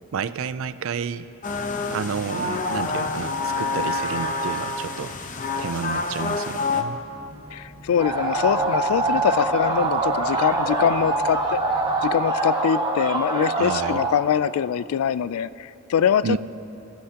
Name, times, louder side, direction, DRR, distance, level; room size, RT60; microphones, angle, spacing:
voice 1, 0.1-1.3 1.9-5.1 5.6-7.0 13.5-14.1 16.2-16.4, right 6 dB, 70° right, 14 dB, 0.4 m, -30 dB
sound 1, 1.4-6.8, left 3 dB, 40° left, 0.7 m, -27 dB
sound 2, 6.8-12.0, equal, 10° left, 3.9 m, -45 dB
voice 2, 7.5-11.6 12.0-16.4, left 8 dB, 90° left, 18 dB, 0.3 m, -23 dB
sound 3, 8.0-14.2, right 3 dB, 20° right, 1.2 m, -24 dB
27.0 x 11.5 x 2.9 m, 2.7 s
head